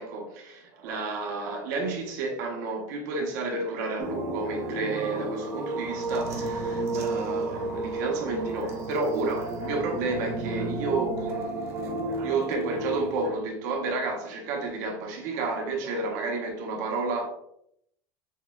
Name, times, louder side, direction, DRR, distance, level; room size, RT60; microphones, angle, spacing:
voice 1, 0.0-17.3, right 3 dB, 65° right, 0.9 m, -31 dB
sound 1, 4.0-13.3, right 2 dB, 25° right, 0.6 m, -32 dB
6.4 x 2.2 x 2.3 m
supercardioid pair, 170°, 10 cm